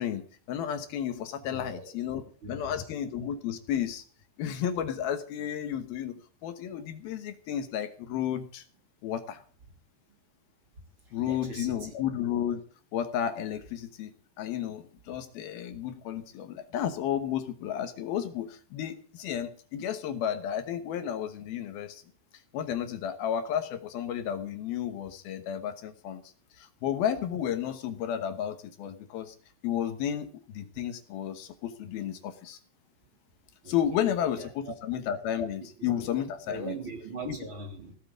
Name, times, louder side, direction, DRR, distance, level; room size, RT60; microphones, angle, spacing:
voice 1, 0.0-4.0 4.4-6.1 6.4-8.6 9.0-9.4 11.1-12.6 12.9-14.1 14.4-22.0 22.5-26.2 26.6-29.4 29.6-32.6 33.7-36.8 37.3-37.4, left 9 dB, 70° left, 2.9 m, -32 dB
voice 2, 1.5-1.9 2.4-2.8 11.2-11.9 33.6-34.7 35.8-36.1 36.5-38.0, right 3 dB, 35° right, 3.7 m, -41 dB
16.5 x 8.6 x 8.0 m
omnidirectional pair, 4.6 m